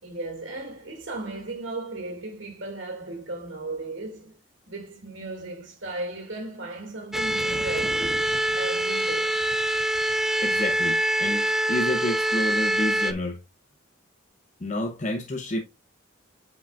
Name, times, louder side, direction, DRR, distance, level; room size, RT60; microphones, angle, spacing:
voice 1, 0.0-4.4 4.7-9.4, right 2 dB, 65° right, 2.3 m, -36 dB
sound 1, 7.1-13.1, right 1 dB, ahead, 0.3 m, -25 dB
voice 2, 10.4-13.4 14.6-15.6, left 1 dB, 35° left, 0.7 m, -29 dB
8.7 x 5.0 x 2.4 m
head